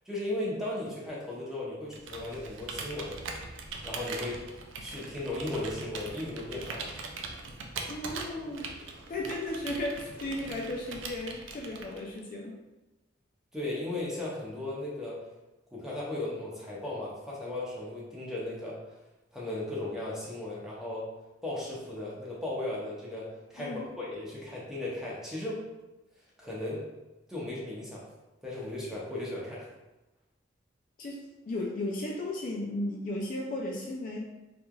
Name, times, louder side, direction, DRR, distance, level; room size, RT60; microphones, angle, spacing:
voice 1, 0.1-3.2 3.8-4.4 4.8-6.9 13.5-15.2 15.7-18.8 19.3-21.1 21.4-25.6 26.4-26.8 27.3-28.1 28.4-29.7, left 1 dB, 5° right, -6 dB, 0.6 m, -36 dB
Computer keyboard, 1.9-12.2, right 4 dB, 85° right, 0.4 m, -41 dB
voice 2, 7.9-8.7 9.1-12.6 23.6-23.9 31.0-34.2, left 1 dB, 45° left, 0 dB, 0.3 m, -35 dB
3.0 x 2.4 x 2.2 m, 1.0 s
head